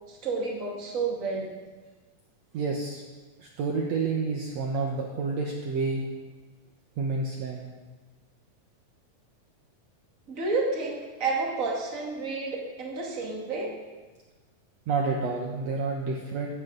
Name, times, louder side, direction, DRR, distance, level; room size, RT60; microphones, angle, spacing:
voice 1, 0.1-1.5 10.3-13.7, right 3 dB, 25° right, -1 dB, 2.3 m, -30 dB
voice 2, 2.5-3.0 3.4-6.1 7.0-7.7 14.9-16.5, right 4 dB, 60° right, 0 dB, 2.1 m, -29 dB
16.0 x 13.5 x 4.1 m, 1.3 s
omnidirectional pair, 3.8 m